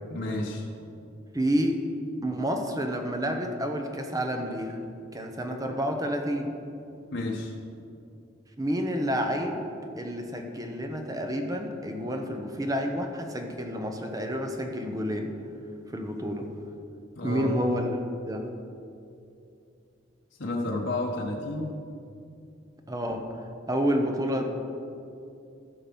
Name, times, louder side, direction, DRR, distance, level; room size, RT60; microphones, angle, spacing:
voice 1, 0.1-0.7 7.1-7.5 17.1-17.5 20.4-21.7, left 2 dB, 65° left, -2 dB, 1.3 m, -31 dB
voice 2, 1.3-1.8 2.2-4.8 5.1-6.5 8.6-9.7 10.0-15.3 15.9-16.5 17.2-18.0 18.3-18.5 22.9-23.3 23.7-24.5, equal, 20° right, 4 dB, 0.9 m, -29 dB
15.0 x 5.9 x 5.3 m, 2.6 s
head